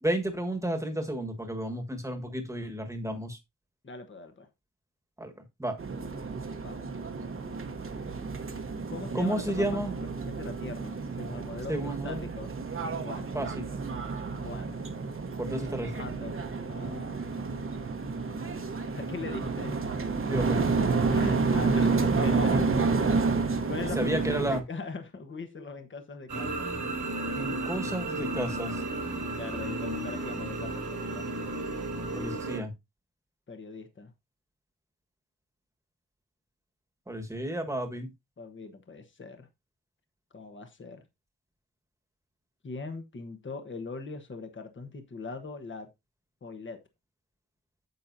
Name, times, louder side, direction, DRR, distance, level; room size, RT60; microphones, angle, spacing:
voice 1, 0.0-3.4 5.2-5.3 5.6-5.8 9.1-9.9 11.7-12.2 13.3-13.7 15.4-16.0 20.3-20.7 23.9-24.6 27.3-28.8 32.1-32.7 37.1-38.1, right 1 dB, 10° right, 1.5 m, -32 dB
voice 2, 3.8-4.5 6.6-6.8 8.9-12.6 13.0-13.4 14.4-14.8 16.0-16.4 16.7-17.6 18.9-19.8 21.1-26.7 29.3-31.3 33.5-34.1 38.4-39.5 40.3-41.0 42.6-45.9 46.4-46.8, left 4 dB, 40° left, 1.2 m, -41 dB
sound 1, 5.8-24.6, right 4 dB, 40° right, 1.1 m, -30 dB
sound 2, 26.3-32.6, right 2 dB, 65° right, 2.0 m, -33 dB
9.4 x 7.3 x 2.7 m
wide cardioid pair, 150°, 31 cm